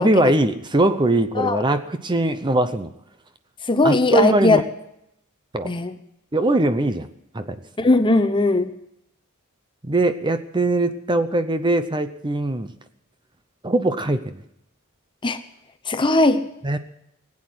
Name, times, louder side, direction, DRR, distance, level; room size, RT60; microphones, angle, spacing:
voice 1, 0.0-2.9 3.8-4.6 5.5-5.7 6.3-7.1 7.3-7.6 9.8-12.7 13.6-14.4 16.6-16.8, right 2 dB, 20° right, 10 dB, 0.7 m, -21 dB
voice 2, 3.7-4.6 5.6-5.9 7.8-8.7 15.2-15.4 15.9-16.4, left 2 dB, 25° left, 10 dB, 0.9 m, -18 dB
20.0 x 8.7 x 7.8 m, 0.79 s
head